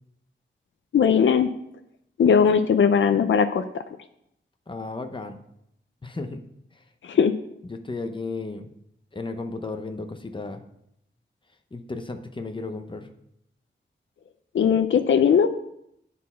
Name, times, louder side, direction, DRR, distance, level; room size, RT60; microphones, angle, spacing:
voice 1, 0.9-1.5 2.2-3.8 7.0-7.3 14.5-15.5, left 7 dB, 85° left, 9 dB, 0.5 m, -19 dB
voice 2, 4.7-5.4 6.0-6.4 7.6-8.7 9.1-10.6 11.7-13.1, left 3 dB, 25° left, 6 dB, 0.8 m, -34 dB
9.4 x 4.2 x 5.6 m, 0.77 s
wide cardioid pair, 125°, 19 cm